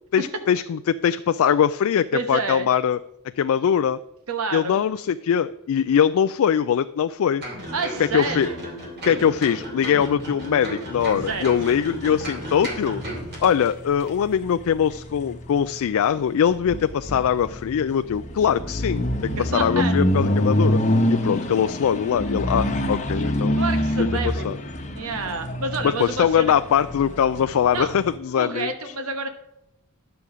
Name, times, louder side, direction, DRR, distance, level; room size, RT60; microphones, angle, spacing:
voice 1, 0.1-3.0 3.4-4.0 4.5-7.4 8.0-8.5 9.1-13.0 13.4-20.8 21.1-23.6 24.0-24.6 25.8-28.9, left 8 dB, 65° left, 11 dB, 0.3 m, -22 dB
voice 2, 2.1-2.7 4.3-4.8 7.7-8.6 11.3-11.5 19.4-20.0 23.6-24.5 24.9-26.5 27.7-27.9 28.3-29.3, right 4 dB, 70° right, 6 dB, 1.1 m, -28 dB
sound 1, 7.4-13.7 14.0-14.1, right 1 dB, 50° right, 2.8 m, -34 dB
sound 2, 11.0-28.2, left 1 dB, 35° left, 1.0 m, -27 dB
10.5 x 6.9 x 4.9 m, 0.87 s
head